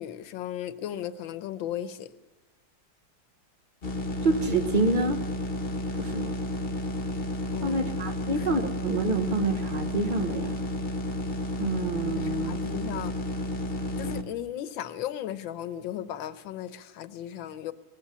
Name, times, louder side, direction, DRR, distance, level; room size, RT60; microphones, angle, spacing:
voice 1, 0.0-2.1 7.5-7.8 8.2-8.5 12.2-13.1 14.0-17.7, left 11 dB, 70° left, 1.6 m, -36 dB
sound 1, 3.8-14.2, left 1 dB, 35° left, 1.2 m, -31 dB
voice 2, 4.2-5.2 6.0-6.4 7.6-10.6 11.6-12.6, right 2 dB, 35° right, 0.9 m, -27 dB
19.0 x 16.0 x 9.9 m
omnidirectional pair, 2.3 m